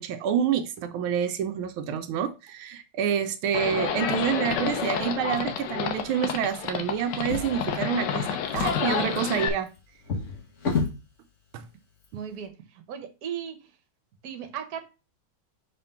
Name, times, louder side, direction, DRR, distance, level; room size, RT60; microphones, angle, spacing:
voice 1, 0.0-8.3 8.5-9.7 10.1-10.2 11.5-11.7, right 8 dB, 85° right, 1.5 m, -28 dB
Livestock farm animals working animals, 3.5-9.5, left 7 dB, 65° left, 1.3 m, -29 dB
Drawer open or close, 7.1-8.1 8.4-11.0 11.9-12.1 12.4-12.5, left 4 dB, 40° left, 1.7 m, -32 dB
voice 2, 12.1-13.7 14.2-14.8, right 8 dB, 55° right, 1.4 m, -37 dB
5.0 x 3.7 x 5.6 m
omnidirectional pair, 2.2 m